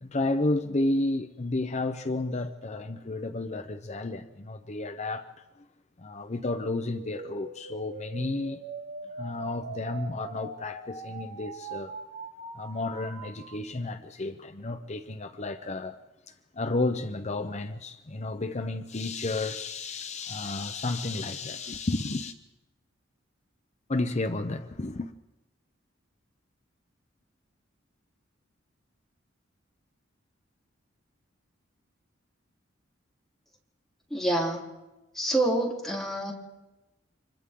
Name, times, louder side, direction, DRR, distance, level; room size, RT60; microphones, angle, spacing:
voice 1, 0.0-5.4 6.0-8.6 9.2-11.9 12.5-16.0 16.5-22.3 23.9-25.1, left 2 dB, 35° left, 0.8 m, -32 dB
sound 1, 6.6-13.6, right 3 dB, 75° right, 2.2 m, -42 dB
voice 2, 34.1-34.6 35.1-36.3, right 1 dB, ahead, 3.7 m, -27 dB
30.0 x 26.0 x 3.8 m
head